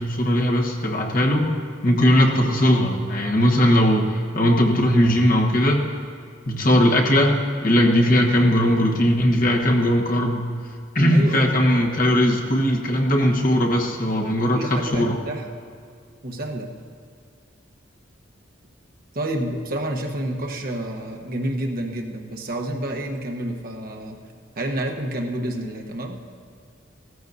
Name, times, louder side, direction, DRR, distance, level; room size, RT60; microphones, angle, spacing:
voice 1, 0.0-1.5 1.8-5.9 6.4-10.5 10.9-15.2, equal, 50° left, 0 dB, 1.4 m, -19 dB
voice 2, 11.1-11.5 14.5-15.6 16.2-16.7 19.1-24.2 24.6-26.2, right 1 dB, 50° right, 1 dB, 1.1 m, -29 dB
16.5 x 14.0 x 2.7 m, 2.2 s
head